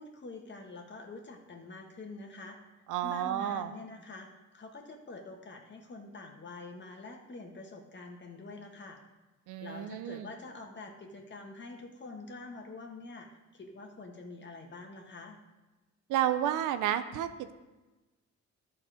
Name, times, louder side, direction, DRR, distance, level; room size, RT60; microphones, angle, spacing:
voice 1, 0.0-2.6 3.0-9.0 9.6-15.4, left 3 dB, 35° left, 3 dB, 1.5 m, -46 dB
voice 2, 2.9-3.7 9.5-10.3 16.1-17.5, right 11 dB, 90° right, 10 dB, 0.6 m, -31 dB
12.0 x 4.3 x 5.0 m, 1.1 s
cardioid pair, 90°, 30 cm